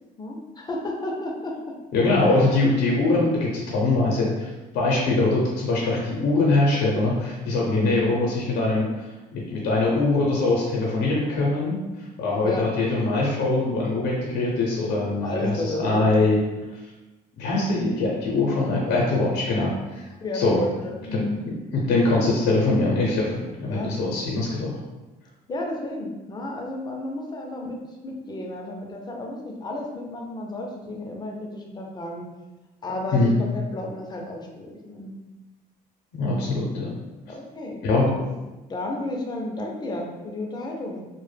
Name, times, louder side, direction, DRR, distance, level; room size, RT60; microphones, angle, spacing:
voice 1, 0.2-1.7 2.2-2.3 7.6-8.1 12.4-12.7 15.2-16.2 20.2-21.4 23.7-23.9 25.5-32.3 32.8-35.1 37.3-37.8 38.7-41.0, left 1 dB, 25° left, 0 dB, 0.4 m, -32 dB
voice 2, 1.9-4.5 4.7-8.9 9.3-11.8 12.2-16.4 17.4-20.0 20.3-20.6 21.1-21.2 21.7-24.7 33.1-33.3 36.1-36.9 37.8-38.1, left 2 dB, 80° left, -3 dB, 0.5 m, -22 dB
2.0 x 2.0 x 3.2 m, 1.1 s
cardioid pair, 110°, 17 cm